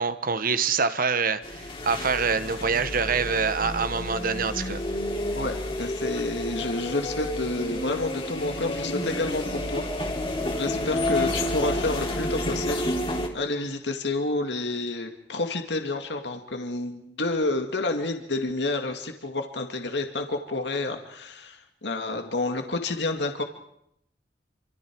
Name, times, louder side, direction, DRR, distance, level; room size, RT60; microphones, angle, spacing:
voice 1, 0.0-4.8, right 5 dB, 55° right, 11 dB, 1.3 m, -25 dB
sound 1, 1.4-13.3, left 1 dB, 35° left, 3.3 m, -30 dB
voice 2, 5.4-9.8 10.5-12.9 13.3-23.4, left 2 dB, 80° left, 5 dB, 2.0 m, -29 dB
27.5 x 26.0 x 4.7 m, 0.76 s
head